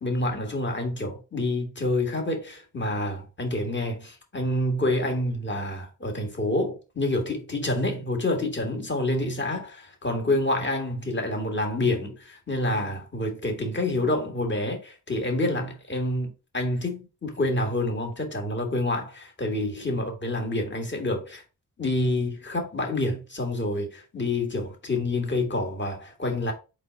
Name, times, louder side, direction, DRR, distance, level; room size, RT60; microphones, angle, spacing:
voice 1, 0.0-21.4 21.8-26.5, left 1 dB, 25° left, 1.5 m, -28 dB
4.0 x 3.3 x 3.7 m
cardioid pair, 60°, 41 cm